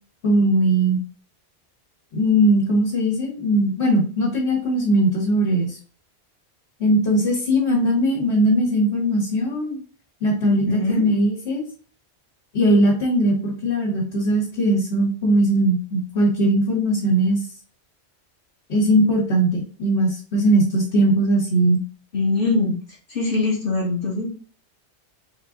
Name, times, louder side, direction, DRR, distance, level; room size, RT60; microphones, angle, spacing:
voice 1, 0.2-1.0 2.1-5.8 6.8-9.8 10.2-11.6 12.5-17.4 18.7-21.8, right 1 dB, 75° left, -5 dB, 1.6 m, -19 dB
voice 2, 10.4-11.1 22.1-22.8 23.1-24.3, left 3 dB, 55° left, -4 dB, 1.2 m, -22 dB
4.0 x 2.5 x 3.8 m, 0.41 s
omnidirectional pair, 1.1 m